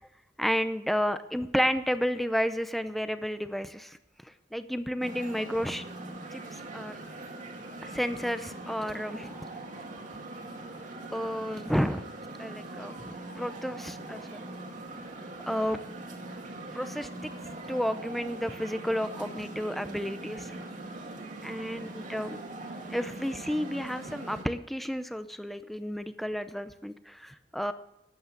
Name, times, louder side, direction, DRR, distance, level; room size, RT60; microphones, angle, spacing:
voice 1, 0.4-4.0 4.2-5.8 6.3-6.4 6.7-7.0 7.8-9.5 11.1-12.0 12.4-13.1 13.4-14.4 15.5-15.8 16.7-17.3 17.7-20.5 21.4-22.4 22.9-27.7, equal, ahead, 11 dB, 0.6 m, -31 dB
sound 1, 5.0-24.4, right 2 dB, 45° right, 2.1 m, -42 dB
12.5 x 8.5 x 8.5 m, 0.82 s
head